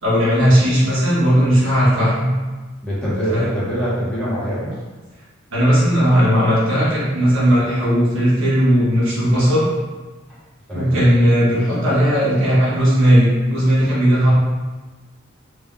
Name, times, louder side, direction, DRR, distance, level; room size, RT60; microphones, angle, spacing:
voice 1, 0.0-2.3 3.3-3.5 5.5-9.6 10.7-14.3, equal, 75° right, -8 dB, 1.4 m, -16 dB
voice 2, 2.8-4.8 10.7-11.0, equal, 5° left, -11 dB, 1.2 m, -24 dB
3.4 x 2.6 x 3.7 m, 1.3 s
head